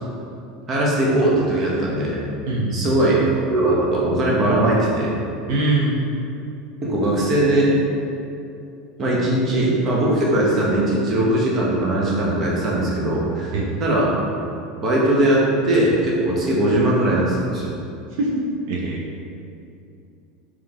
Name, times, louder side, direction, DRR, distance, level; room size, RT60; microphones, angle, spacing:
voice 1, 0.7-2.2 2.7-3.2 3.5-5.1 6.8-7.8 9.0-13.5 13.8-14.1 14.8-17.7, right 1 dB, 25° right, -5 dB, 0.8 m, -19 dB
voice 2, 2.5-3.0 5.5-6.0 13.5-13.7 18.2-19.0, right 2 dB, 65° right, -3 dB, 0.5 m, -23 dB
3.9 x 3.0 x 3.5 m, 2.6 s
supercardioid pair, 150°, 0 cm